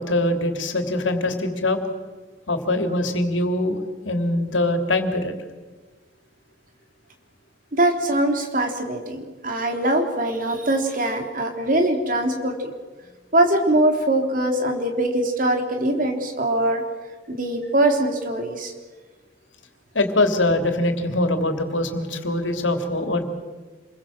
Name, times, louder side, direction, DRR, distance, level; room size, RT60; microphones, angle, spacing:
voice 1, 0.0-1.8 2.5-3.8 4.0-5.3 19.9-23.2, left 2 dB, 85° left, 6 dB, 3.2 m, -23 dB
voice 2, 7.7-12.7 13.3-16.8 17.3-18.7, right 1 dB, 45° right, 4 dB, 3.7 m, -22 dB
28.0 x 22.0 x 7.6 m, 1.3 s
head